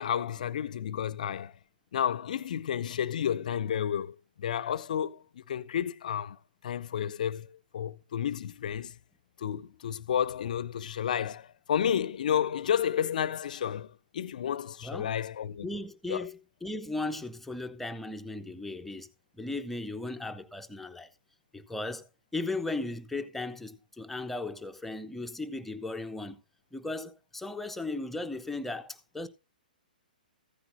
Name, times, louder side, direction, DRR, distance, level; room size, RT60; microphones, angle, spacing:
voice 1, 0.0-1.5 1.9-6.4 6.6-7.5 7.7-8.9 9.4-15.7 16.1-16.2, left 9 dB, 55° left, 0.5 m, -31 dB
voice 2, 15.6-19.1 19.3-21.1 21.5-26.4 26.7-29.3, left 2 dB, 5° left, 0.6 m, -36 dB
14.5 x 9.8 x 2.6 m
figure-of-eight pair, 120°, 5 cm